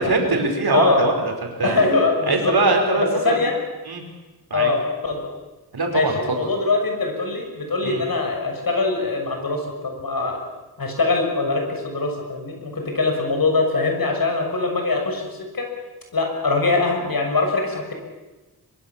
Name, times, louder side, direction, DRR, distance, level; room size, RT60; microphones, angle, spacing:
voice 1, 0.0-1.8 2.3-3.5 3.8-4.0 4.5-4.7 5.7-6.2 7.8-8.0, right 3 dB, 70° right, 2 dB, 5.1 m, -22 dB
voice 2, 0.7-1.0 1.6-2.5 3.2-3.6 4.5-4.8 5.0-5.2 5.9-10.4 10.8-15.7 16.1-17.9, left 3 dB, 60° left, 2 dB, 6.4 m, -22 dB
23.0 x 23.0 x 7.3 m, 1.2 s
wide cardioid pair, 75°, 39 cm